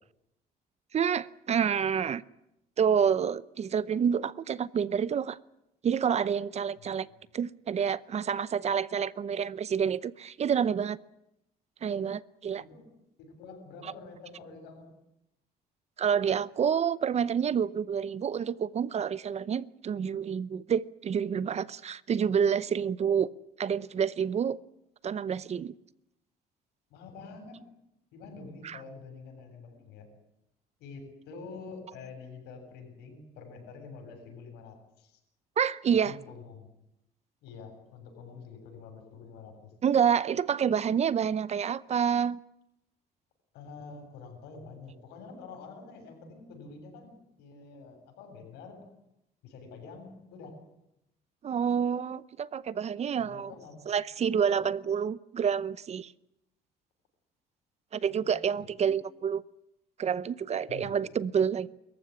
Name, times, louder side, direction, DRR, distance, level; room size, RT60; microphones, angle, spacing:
voice 1, 0.9-2.2 2.8-5.4 5.8-7.1 7.3-11.0 11.8-12.6 16.0-23.3 23.6-24.6 25.0-25.8 28.6-28.8 35.6-36.2 39.8-42.4 51.4-53.5 53.9-56.1 57.9-59.4 60.0-61.7, right 7 dB, 40° right, 18 dB, 0.7 m, -28 dB
voice 2, 6.8-7.3 12.6-12.9 13.2-14.9 26.9-27.7 28.1-30.1 30.8-35.2 35.9-36.7 37.4-39.7 43.5-48.8 49.4-50.6 53.2-53.8 58.0-58.9 60.7-61.0, left 4 dB, 90° left, 4 dB, 7.7 m, -47 dB
24.0 x 14.5 x 9.9 m, 0.87 s
cardioid pair, 110°, 17 cm